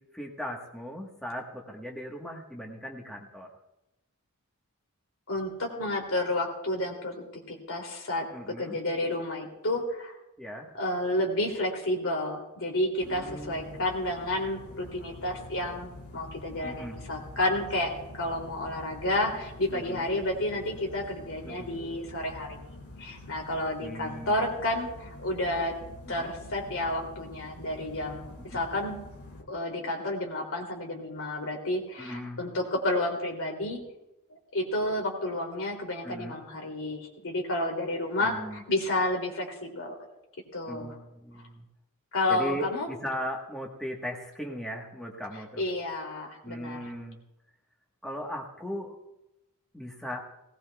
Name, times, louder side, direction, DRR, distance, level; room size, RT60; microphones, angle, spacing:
voice 1, 0.0-3.5 8.3-8.8 10.4-10.7 13.1-13.8 16.6-17.0 19.7-20.1 21.4-21.7 23.8-24.4 26.1-26.3 28.5-28.6 32.0-32.5 36.0-36.3 38.2-38.6 40.7-41.7 42.3-45.6 46.4-47.2 48.0-48.9 49.7-50.2, equal, ahead, -1 dB, 1.2 m, -38 dB
voice 2, 5.3-8.3 8.6-10.2 10.7-22.6 23.0-25.7 26.1-29.0 29.5-33.8 34.5-39.9 40.5-40.9 42.1-42.9 45.6-46.8, left 1 dB, 65° left, 1 dB, 2.8 m, -31 dB
sound 1, 13.0-29.4, left 1 dB, 80° left, 1.9 m, -46 dB
19.0 x 18.0 x 2.3 m, 0.93 s
head